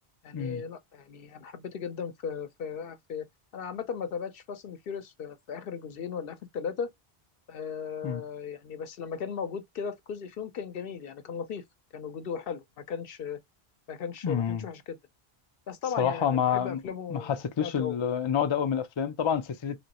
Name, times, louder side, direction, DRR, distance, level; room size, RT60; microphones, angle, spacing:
voice 1, 0.2-3.3 3.5-6.9 7.5-11.6 11.9-13.4 13.9-15.0 15.7-18.0, left 6 dB, 70° left, 0.8 m, -37 dB
voice 2, 14.2-14.6 16.0-16.8 17.1-19.9, left 8 dB, 50° left, 0.3 m, -28 dB
3.3 x 3.0 x 2.9 m
omnidirectional pair, 1.0 m